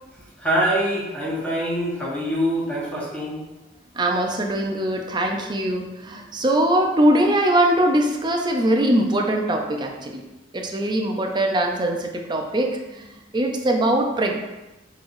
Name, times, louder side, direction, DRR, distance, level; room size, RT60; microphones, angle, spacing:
voice 1, 0.4-3.4, equal, 10° left, -7 dB, 1.3 m, -24 dB
voice 2, 3.9-10.2 10.5-14.3, right 1 dB, 25° right, 2 dB, 0.5 m, -22 dB
5.6 x 3.1 x 2.6 m, 1.0 s
head